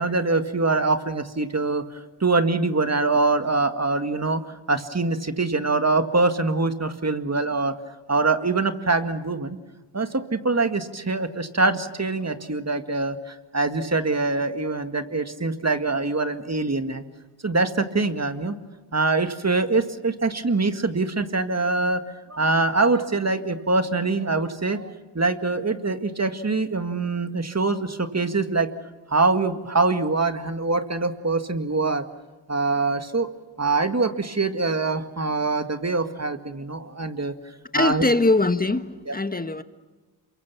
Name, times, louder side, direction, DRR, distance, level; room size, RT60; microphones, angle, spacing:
voice 1, 0.0-1.8 2.2-7.8 8.1-9.6 9.9-17.0 17.4-18.5 18.9-22.0 22.3-28.7 29.1-32.1 32.5-33.3 33.6-37.4 37.7-38.1 39.1-39.2, right 3 dB, 35° right, 1.9 m, -24 dB
voice 2, 37.7-39.6, left 2 dB, 20° left, 1.5 m, -22 dB
27.5 x 23.0 x 7.1 m
cardioid pair, 45°, 47 cm